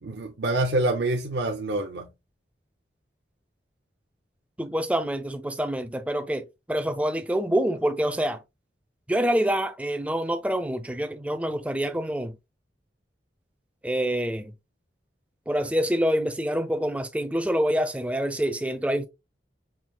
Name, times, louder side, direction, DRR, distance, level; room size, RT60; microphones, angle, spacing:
voice 1, 0.0-2.1, right 2 dB, 75° right, 0.6 m, -26 dB
voice 2, 4.6-8.4 9.1-12.4 13.8-14.5 15.5-19.1, equal, 10° right, 0.4 m, -26 dB
5.7 x 2.6 x 2.3 m
head